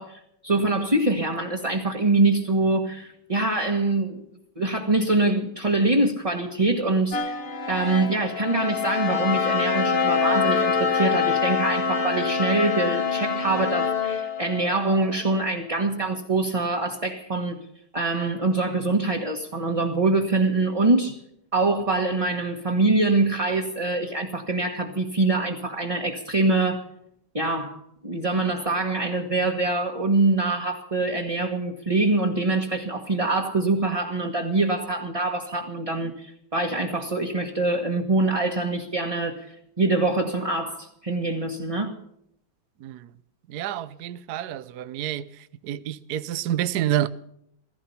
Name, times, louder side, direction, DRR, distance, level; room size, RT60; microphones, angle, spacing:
voice 1, 0.0-4.2 4.5-7.4 7.7-17.6 17.9-21.2 21.5-26.8 27.3-41.9, right 2 dB, 20° right, 1.4 m, -24 dB
sound 1, 7.1-15.2, left 5 dB, 35° left, 1.3 m, -25 dB
voice 2, 43.5-45.3 45.6-47.1, right 12 dB, 65° right, 1.1 m, -28 dB
16.0 x 16.0 x 5.7 m
omnidirectional pair, 2.3 m